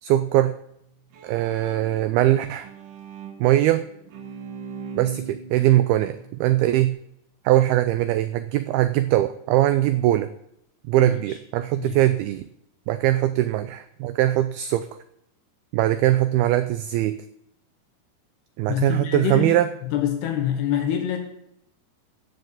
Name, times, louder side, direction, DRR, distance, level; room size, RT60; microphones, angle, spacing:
voice 1, 0.0-0.5 1.2-2.7 3.4-3.9 5.0-6.9 7.5-10.3 10.9-12.5 12.9-14.9 15.7-17.2 18.6-19.7, right 14 dB, 90° right, 12 dB, 2.2 m, -21 dB
Bowed string instrument, 0.8-6.9, right 5 dB, 60° right, 2.5 m, -41 dB
voice 2, 11.0-11.4 11.8-12.0 18.7-19.6 19.8-21.2, left 9 dB, 75° left, 4 dB, 3.2 m, -26 dB
16.0 x 6.8 x 7.2 m, 0.77 s
omnidirectional pair, 5.1 m